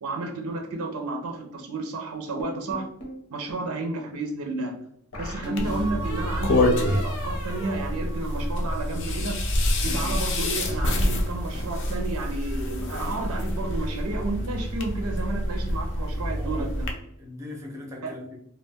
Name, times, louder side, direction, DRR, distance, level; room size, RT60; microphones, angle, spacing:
voice 1, 0.0-2.9 3.3-4.8 5.2-9.4 9.8-16.9 18.0-18.1, right 2 dB, 80° right, 4 dB, 0.5 m, -32 dB
sound 1, 2.4-3.2 5.1-8.8, left 1 dB, 90° left, 0.8 m, -35 dB
sound 2, 5.6-16.9, left 1 dB, 55° left, 0.5 m, -27 dB
voice 2, 9.8-10.2 16.3-16.8 17.2-18.4, left 2 dB, 15° right, -1 dB, 0.5 m, -39 dB
2.2 x 2.1 x 3.3 m, 0.72 s
head